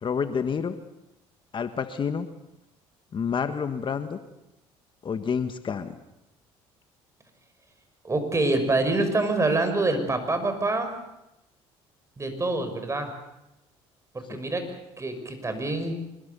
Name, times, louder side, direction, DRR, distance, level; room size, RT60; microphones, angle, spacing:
voice 1, 0.0-0.8 1.5-2.3 3.1-4.2 5.0-6.0 14.3-14.4, left 6 dB, 40° left, 9 dB, 1.6 m, -28 dB
voice 2, 8.0-10.9 12.2-13.1 14.1-14.6 15.0-15.9, right 2 dB, 25° right, 7 dB, 6.0 m, -26 dB
25.0 x 21.5 x 7.0 m, 0.90 s
supercardioid pair, 80°, 13 cm